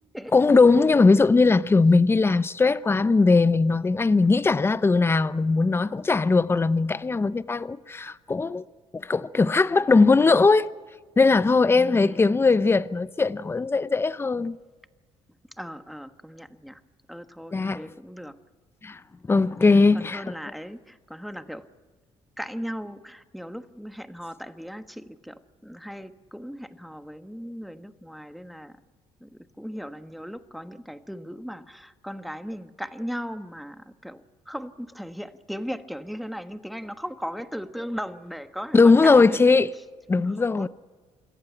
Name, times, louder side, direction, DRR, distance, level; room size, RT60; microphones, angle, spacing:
voice 1, 0.3-8.6 8.9-10.7 11.2-14.6 17.5-17.9 18.8-19.0 19.3-20.2 38.7-39.7 40.1-40.7, left 3 dB, 20° left, 0.7 m, -19 dB
voice 2, 11.7-12.2 15.5-16.8 17.1-18.4 19.7-21.7 22.4-28.8 29.2-39.4 40.2-40.7, equal, ahead, 1.3 m, -37 dB
27.0 x 14.5 x 9.1 m
cardioid pair, 90°, 11 cm